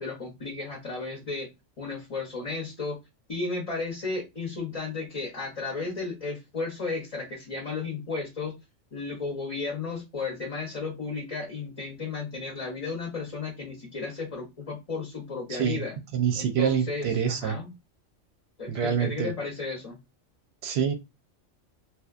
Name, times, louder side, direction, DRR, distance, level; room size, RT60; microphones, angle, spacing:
voice 1, 0.0-1.5 1.8-3.0 3.3-8.6 8.9-16.0 16.3-17.7 18.6-20.0, left 4 dB, 35° left, 0.6 m, -34 dB
voice 2, 15.5-15.8 16.1-17.6 18.7-19.3 20.6-20.9, right 8 dB, 65° right, 0.7 m, -26 dB
2.8 x 2.2 x 2.4 m
omnidirectional pair, 1.3 m